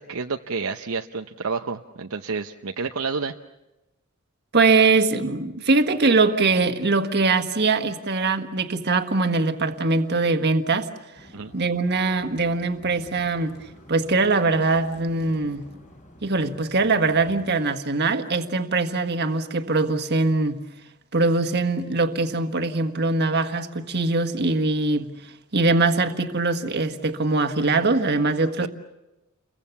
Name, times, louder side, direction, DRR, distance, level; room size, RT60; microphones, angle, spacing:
voice 1, 0.0-3.4 11.3-11.5 28.6-28.7, right 4 dB, 80° right, 0.8 m, -29 dB
voice 2, 4.5-10.9 11.5-13.5 13.9-15.7 16.2-20.6 21.1-25.1 25.5-28.7, right 3 dB, 50° right, 1.5 m, -22 dB
sound 1, 11.1-17.5, equal, 35° left, 5.0 m, -49 dB
30.0 x 23.0 x 7.1 m
head